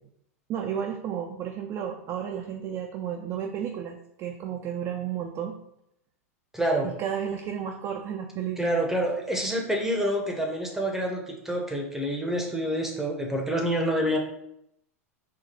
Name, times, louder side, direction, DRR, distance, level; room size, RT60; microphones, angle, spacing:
voice 1, 0.5-5.6 6.8-8.8, right 8 dB, 35° right, 3 dB, 0.4 m, -32 dB
voice 2, 6.5-6.9 8.6-14.2, equal, 5° right, 0 dB, 0.7 m, -27 dB
4.3 x 2.2 x 4.1 m, 0.78 s
hypercardioid pair, 95°, 8 cm